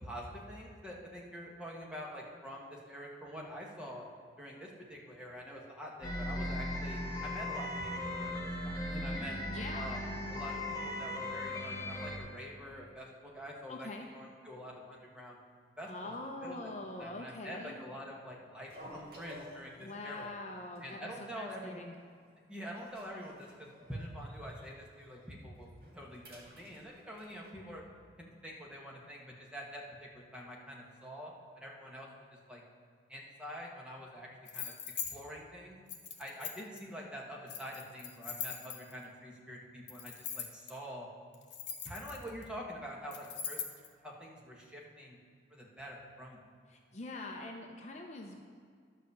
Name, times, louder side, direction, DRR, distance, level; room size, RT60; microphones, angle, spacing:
voice 1, 0.0-4.0 4.4-9.4 9.7-10.0 10.3-15.4 15.8-16.1 16.4-16.7 17.0-20.3 20.8-21.8 22.5-25.7 25.9-27.8 28.2-32.1 32.5-32.6 33.1-34.8 35.1-35.8 36.2-41.1 41.8-43.6 44.0-45.2 45.5-46.4, equal, 5° right, -3 dB, 1.3 m, -46 dB
sound 1, 6.0-12.2, left 1 dB, 20° left, 1.0 m, -37 dB
voice 2, 9.5-9.9 13.7-14.1 15.9-17.8 19.8-21.9 46.7-48.4, left 2 dB, 35° left, 2 dB, 0.6 m, -44 dB
sound 2, 18.6-20.2 20.5-20.8 21.0-21.1 21.7-22.2 22.6-24.7 25.0-25.2 25.6-27.5, equal, 55° right, 1.9 m, -54 dB
sound 3, 34.5-35.1 35.9-36.8 37.5-39.0 39.9-40.7 41.3-42.4 43.1-43.9, left 8 dB, 75° left, 1.1 m, -41 dB
11.0 x 5.0 x 6.9 m, 2.1 s
head